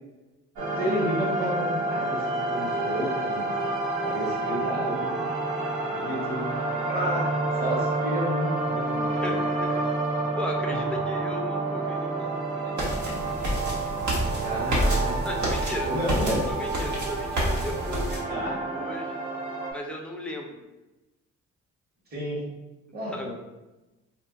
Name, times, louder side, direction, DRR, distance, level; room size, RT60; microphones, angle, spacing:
sound 1, 0.6-19.7, right 2 dB, 85° right, 0.8 m, -29 dB
voice 1, 0.8-3.5 4.0-5.2 5.9-6.5 6.8-7.3 7.6-9.3 10.7-10.8 14.4-15.1 15.8-16.4 18.3-18.9 22.1-22.4 22.9-23.3, equal, 30° right, -5 dB, 1.2 m, -31 dB
voice 2, 9.2-9.9 10.4-12.8 15.2-19.1 19.7-20.6 23.1-23.3, left 1 dB, 5° left, 1 dB, 0.5 m, -36 dB
sound 2, 12.8-18.2, equal, 70° right, 1.1 m, -29 dB
2.4 x 2.1 x 3.7 m, 1.0 s
cardioid pair, 90°, 30 cm